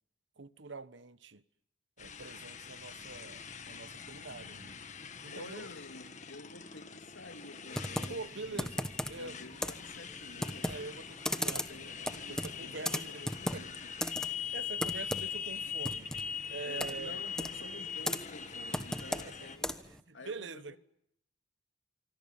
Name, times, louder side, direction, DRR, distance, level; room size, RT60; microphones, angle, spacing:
voice 1, 0.4-1.4 2.0-4.8 5.2-5.7 8.1-9.4 10.6-13.2 13.5-13.7 14.5-16.1 16.5-17.2 19.1-19.5 19.8-20.8, right 3 dB, 75° right, 1.2 m, -45 dB
Motorcycle, 2.0-19.6, left 6 dB, 40° left, 1.8 m, -42 dB
voice 2, 5.3-8.2 8.5-8.7 9.2-10.7 11.3-13.9 16.6-19.8 20.1-20.8, left 2 dB, 85° left, 2.6 m, -50 dB
Computer keyboard, 7.7-20.0, left 1 dB, 5° left, 1.1 m, -38 dB
26.5 x 25.0 x 7.2 m
head